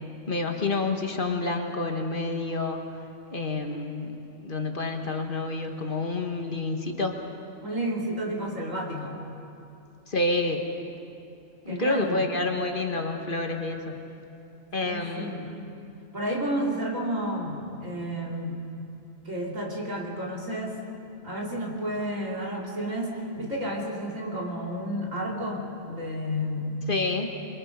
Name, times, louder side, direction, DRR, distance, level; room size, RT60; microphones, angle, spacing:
voice 1, 0.3-2.8 3.3-7.2 10.1-10.8 11.6-14.0 14.7-15.5 26.9-27.3, left 2 dB, 40° left, 3 dB, 1.7 m, -28 dB
voice 2, 7.6-9.2 11.7-12.3 14.8-15.4 16.1-18.6 19.3-20.8 21.2-26.8, equal, 90° right, -3 dB, 3.6 m, -31 dB
27.5 x 22.5 x 5.3 m, 2.7 s
omnidirectional pair, 1.3 m